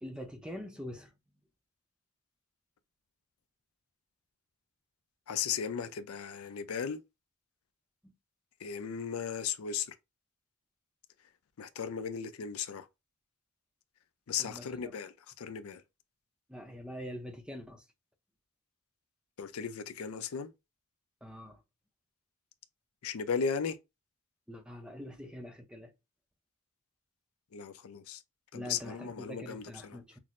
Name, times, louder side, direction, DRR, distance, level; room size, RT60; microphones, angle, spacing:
voice 1, 0.0-1.1 8.0-8.1 14.4-14.9 16.5-17.8 21.2-21.6 24.5-25.9 28.5-30.2, equal, 5° right, 0.5 m, -44 dB
voice 2, 5.3-7.0 8.6-10.0 11.6-12.9 14.3-15.8 19.4-20.5 23.0-23.8 27.5-28.2 28.5-30.0, left 7 dB, 80° left, 0.5 m, -36 dB
5.9 x 2.0 x 2.4 m
head